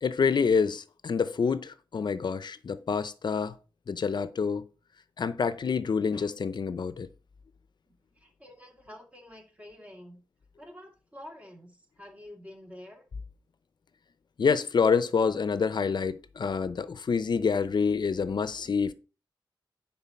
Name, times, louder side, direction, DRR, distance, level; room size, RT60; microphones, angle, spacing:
voice 1, 0.0-3.5 3.9-4.7 5.2-7.1 14.4-18.9, left 5 dB, 60° left, 0.7 m, -27 dB
voice 2, 8.1-10.2 10.6-13.0, left 1 dB, 15° right, 2.3 m, -48 dB
9.9 x 4.0 x 5.7 m
wide cardioid pair, 105°, 8 cm